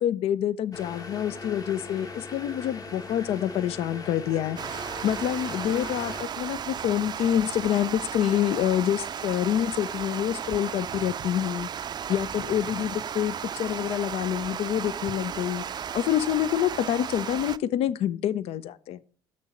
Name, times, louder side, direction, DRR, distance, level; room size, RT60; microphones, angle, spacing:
voice 1, 0.0-11.7 12.1-15.6 15.9-19.0, left 11 dB, 60° left, 18 dB, 0.4 m, -27 dB
sound 1, 0.7-6.2, left 3 dB, 35° left, 1.3 m, -40 dB
Water, 4.6-17.6, right 8 dB, 40° right, 0.4 m, -35 dB
6.8 x 6.5 x 4.9 m, 0.41 s
supercardioid pair, 70°, 11 cm